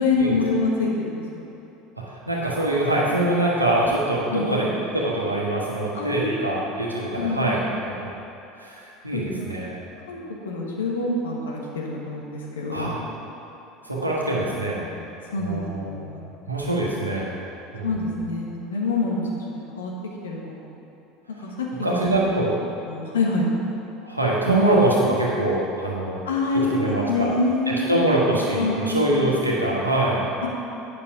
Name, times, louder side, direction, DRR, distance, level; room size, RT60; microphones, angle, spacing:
voice 1, 0.0-1.4 4.3-4.7 5.9-6.5 7.2-7.8 9.1-9.5 10.1-12.9 14.8-16.2 17.8-19.9 20.2-20.7 21.4-22.5 22.9-23.5 26.3-26.8 27.1-27.9 28.6-29.0 30.4-30.5, left 3 dB, 70° left, -2 dB, 1.3 m, -26 dB
voice 2, 2.0-8.1 8.6-9.9 12.7-13.1 13.8-14.9 15.4-17.3 17.7-17.9 21.4-21.5 21.7-22.5 24.0-26.2 26.5-27.3 27.7-30.3, right 1 dB, 90° right, -4 dB, 1.3 m, -24 dB
8.9 x 6.2 x 4.7 m, 2.8 s
figure-of-eight pair, 70°, 0 cm